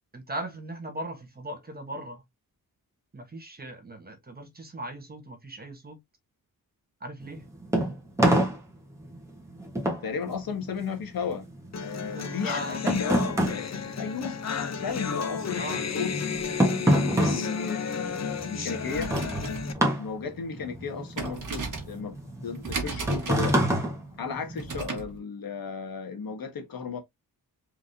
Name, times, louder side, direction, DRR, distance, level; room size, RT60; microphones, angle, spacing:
voice 1, 0.1-2.2 3.1-6.0 7.0-7.4 12.1-12.8 14.9-15.2 15.5-15.9, right 1 dB, 25° right, 1.2 m, -38 dB
sound 1, 7.2-14.9 15.1-24.8, right 1 dB, 10° right, 1.4 m, -28 dB
voice 2, 10.0-11.5 11.8-13.2 14.0-14.4 14.7-16.1 16.6-19.1 20.0-22.2 22.4-23.6 24.2-27.0, left 5 dB, 70° left, 1.4 m, -34 dB
sound 2, 11.7-19.7, left 6 dB, 50° left, 0.7 m, -33 dB
sound 3, 18.8-25.2, right 4 dB, 60° right, 1.5 m, -37 dB
4.7 x 3.6 x 2.7 m
wide cardioid pair, 165°, 36 cm